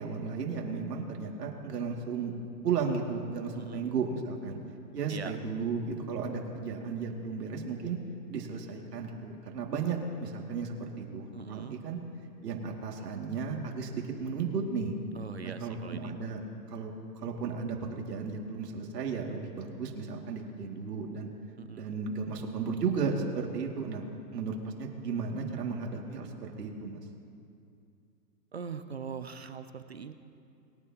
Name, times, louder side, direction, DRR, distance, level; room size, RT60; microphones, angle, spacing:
voice 1, 0.0-2.3 2.6-4.6 4.9-8.0 8.3-12.0 12.4-14.9 15.4-16.4 16.7-16.9 17.2-21.3 21.7-24.1 24.3-27.0, right 5 dB, 70° right, 0 dB, 2.5 m, -34 dB
voice 2, 3.5-3.9 5.1-5.4 11.3-11.7 15.1-16.1 21.6-21.9 28.5-30.1, right 6 dB, 45° right, 9 dB, 0.4 m, -41 dB
21.5 x 9.9 x 2.9 m, 2.5 s
hypercardioid pair, 175°, 50 cm